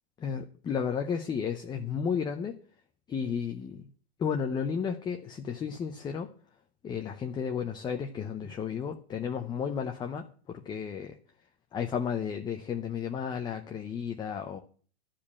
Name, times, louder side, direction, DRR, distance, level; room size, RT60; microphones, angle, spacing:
voice 1, 0.2-2.6 3.1-3.9 4.2-6.3 6.8-11.2 11.7-14.6, left 7 dB, 15° left, 5 dB, 0.7 m, -33 dB
11.5 x 5.1 x 8.5 m, 0.44 s
hypercardioid pair, 140°, 32 cm